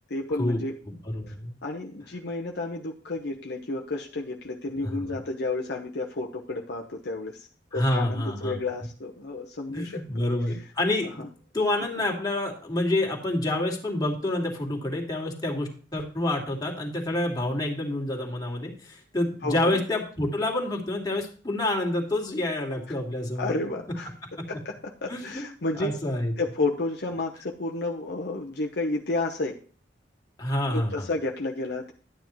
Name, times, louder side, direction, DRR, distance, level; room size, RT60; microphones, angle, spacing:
voice 1, 0.1-0.7 1.3-1.4 1.6-7.5 7.7-10.0 11.2-11.3 19.4-19.8 23.4-24.1 24.5-25.9 26.4-29.6 30.7-31.9, left 2 dB, 60° left, 1 dB, 0.9 m, -31 dB
voice 2, 0.9-1.5 4.8-5.0 7.7-8.6 9.7-11.2 11.5-23.5 25.1-25.4 25.8-26.3 30.4-31.1, left 1 dB, 20° left, 0 dB, 2.3 m, -28 dB
11.5 x 9.5 x 3.1 m, 0.41 s
head